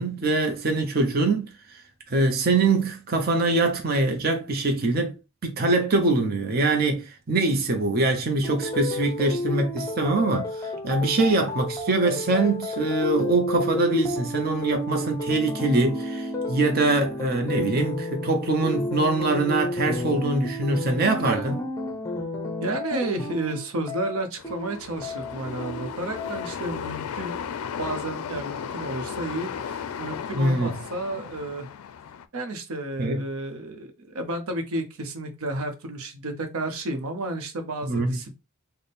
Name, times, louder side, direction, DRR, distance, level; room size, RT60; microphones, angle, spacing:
voice 1, 0.0-1.8 2.1-5.1 5.4-21.6 30.3-30.8 33.0-33.2 37.8-38.2, right 2 dB, 45° right, 0.6 m, -23 dB
sound 1, 8.4-26.7, left 1 dB, 15° left, 0.5 m, -32 dB
voice 2, 21.2-21.5 22.6-27.4 27.8-31.7 32.3-38.4, right 1 dB, 85° right, 0.7 m, -32 dB
sound 2, 24.4-32.3, left 7 dB, 85° left, 0.4 m, -35 dB
3.4 x 2.1 x 4.1 m
head